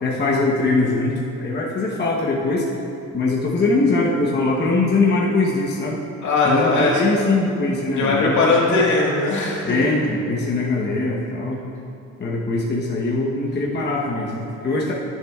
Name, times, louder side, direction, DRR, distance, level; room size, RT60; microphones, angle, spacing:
voice 1, 0.0-2.7 3.1-6.0 6.4-8.6 9.6-11.6 12.2-14.9, left 3 dB, 35° left, -3 dB, 1.0 m, -21 dB
voice 2, 6.2-7.0 8.0-9.9, left 3 dB, 70° left, -5 dB, 2.1 m, -19 dB
14.0 x 7.4 x 2.4 m, 2.7 s
cardioid pair, 105°, 30 cm